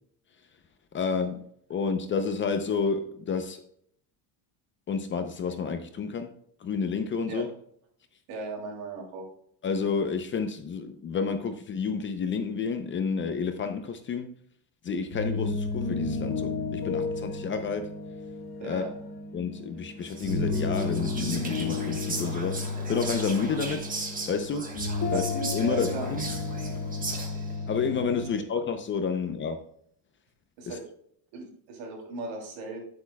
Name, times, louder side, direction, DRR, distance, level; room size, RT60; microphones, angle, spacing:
voice 1, 0.9-1.4 1.7-3.6 4.9-6.3 6.6-7.5 9.6-14.3 14.8-17.9 18.6-18.9 19.3-22.6 22.9-23.9 24.3-24.7 25.1-25.2 25.5-26.2 27.7-29.6 30.7-30.8, left 5 dB, 25° left, 8 dB, 0.5 m, -30 dB
voice 2, 8.3-9.2 18.6-18.9 25.1-25.2 25.6-26.1 30.6-30.8 31.3-32.8, right 3 dB, 75° right, 1 dB, 3.0 m, -37 dB
sound 1, 15.0-28.3, left 3 dB, 40° left, 1.4 m, -32 dB
Whispering, 20.0-27.6, right 3 dB, 20° right, 1.3 m, -38 dB
8.6 x 8.2 x 2.2 m, 0.67 s
cardioid pair, 155°, 46 cm